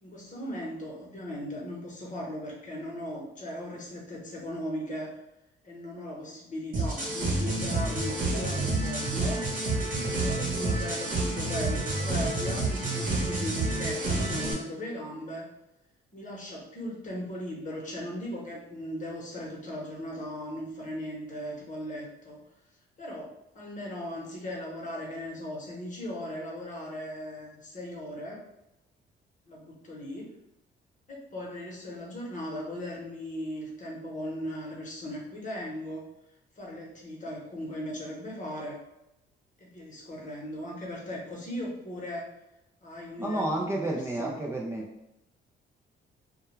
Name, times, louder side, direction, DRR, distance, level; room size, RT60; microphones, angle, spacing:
voice 1, 0.0-5.1 5.6-9.4 9.9-15.5 16.1-22.4 23.0-28.4 29.5-30.3 31.1-36.0 36.6-38.8 39.6-42.3 42.8-44.3, equal, 40° left, -2 dB, 0.9 m, -38 dB
sound 1, 6.7-14.5, right 2 dB, 45° right, 0.9 m, -29 dB
voice 2, 43.2-44.8, right 1 dB, 15° right, -2 dB, 0.3 m, -30 dB
2.2 x 2.2 x 3.1 m, 0.90 s
cardioid pair, 90°, 20 cm